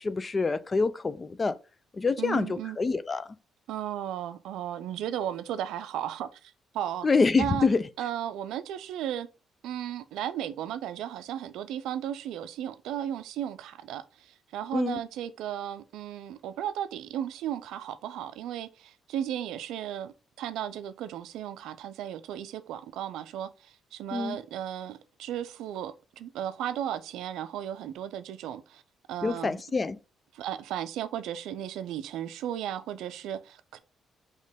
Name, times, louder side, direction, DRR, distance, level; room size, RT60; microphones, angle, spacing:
voice 1, 0.0-1.6 1.9-3.3 7.0-7.8 14.7-15.0 24.1-24.4 29.2-30.0, left 4 dB, 30° left, 0.4 m, -26 dB
voice 2, 2.2-2.8 3.7-7.1 7.3-7.7 8.0-9.3 9.6-28.8 29.1-29.6 30.3-33.8, right 10 dB, 90° right, 0.4 m, -35 dB
4.3 x 3.0 x 3.4 m
cardioid pair, 90°, 0 cm